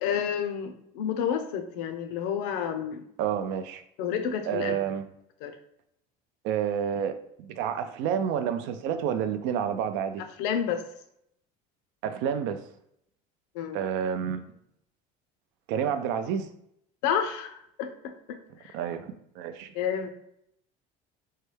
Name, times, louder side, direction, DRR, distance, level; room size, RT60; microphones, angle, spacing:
voice 1, 0.0-3.0 4.0-4.7 5.4-5.5 10.4-10.8 13.5-13.8 17.0-18.7 19.7-20.1, left 8 dB, 80° left, 7 dB, 0.5 m, -30 dB
voice 2, 3.2-3.8 4.5-5.1 6.4-10.2 12.0-12.6 13.7-14.4 15.7-16.5 18.7-19.7, right 8 dB, 70° right, 10 dB, 0.4 m, -29 dB
3.2 x 2.2 x 3.1 m, 0.73 s
supercardioid pair, 105°, 19 cm